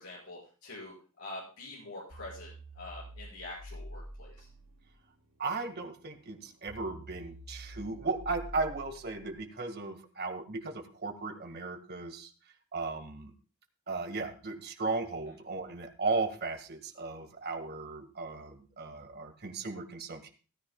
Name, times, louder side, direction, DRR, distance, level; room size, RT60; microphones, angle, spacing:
voice 1, 0.0-4.5, left 2 dB, 90° left, -5 dB, 5.7 m, -45 dB
sound 1, 2.1-9.4, right 1 dB, 70° right, 3.4 m, -48 dB
voice 2, 5.4-12.3 12.7-13.3 13.9-20.3, right 3 dB, 50° right, 4 dB, 1.7 m, -36 dB
17.0 x 13.5 x 2.2 m, 0.37 s
head